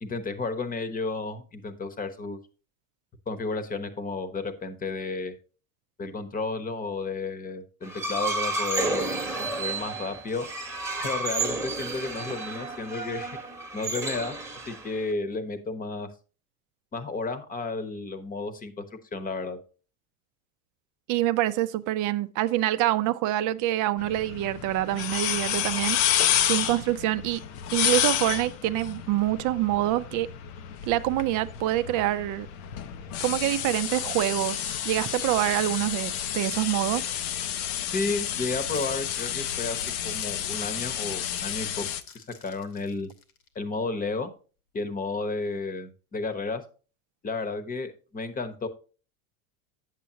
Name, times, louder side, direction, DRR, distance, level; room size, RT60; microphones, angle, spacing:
voice 1, 0.0-2.4 3.3-5.3 6.0-9.1 9.4-10.5 11.0-13.4 13.7-14.4 14.7-16.1 16.9-19.6 37.9-41.9 42.1-43.1 43.5-44.3 44.7-46.6 47.2-48.7, left 3 dB, 20° left, 1.0 m, -32 dB
sound 1, 7.8-15.1, right 3 dB, 5° right, 1.2 m, -31 dB
voice 2, 21.1-27.4 27.7-30.3 30.9-32.5 33.2-37.1, right 15 dB, 45° right, 0.6 m, -26 dB
sound 2, 24.0-42.0, left 10 dB, 60° left, 0.7 m, -30 dB
sound 3, 38.0-43.6, left 6 dB, 80° left, 1.6 m, -48 dB
8.4 x 7.5 x 2.8 m
hypercardioid pair, 105°, 44 cm